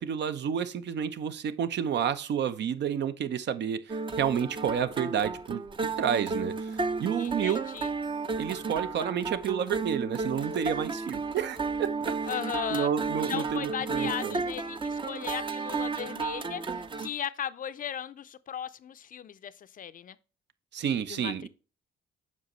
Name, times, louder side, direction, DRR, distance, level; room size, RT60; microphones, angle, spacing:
voice 1, 0.0-7.6 8.4-12.1 12.7-14.4 20.7-21.5, right 8 dB, 60° right, 0.7 m, -30 dB
sound 1, 3.9-17.1, right 4 dB, 25° right, 0.6 m, -33 dB
voice 2, 7.2-7.9 12.3-12.9 13.3-20.2 21.1-21.5, left 9 dB, 45° left, 0.5 m, -37 dB
7.6 x 5.5 x 3.0 m
cardioid pair, 90°, 20 cm